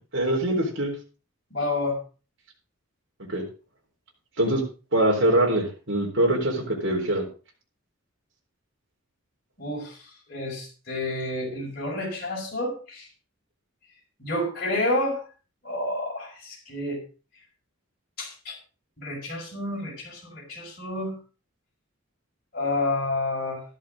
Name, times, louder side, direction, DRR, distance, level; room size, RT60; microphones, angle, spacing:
voice 1, 0.1-0.9 3.3-3.4 4.4-4.6 4.9-7.3, right 1 dB, 60° right, -1 dB, 3.9 m, -23 dB
voice 2, 1.5-2.0 9.6-13.1 14.2-15.2 15.6-17.0 18.2-18.6 19.0-21.2 22.5-23.6, left 2 dB, 50° left, -4 dB, 5.6 m, -29 dB
13.0 x 11.0 x 3.7 m, 0.35 s
head